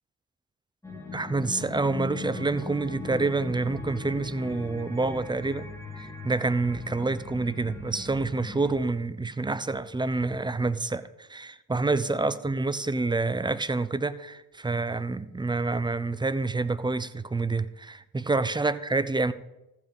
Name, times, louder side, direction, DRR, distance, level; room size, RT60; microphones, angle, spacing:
sound 1, 0.8-8.8, left 3 dB, 5° left, 3.0 m, -39 dB
voice 1, 1.1-5.7 5.9-19.3, right 3 dB, 10° right, 0.7 m, -28 dB
14.5 x 5.8 x 7.2 m
supercardioid pair, 65°, 44 cm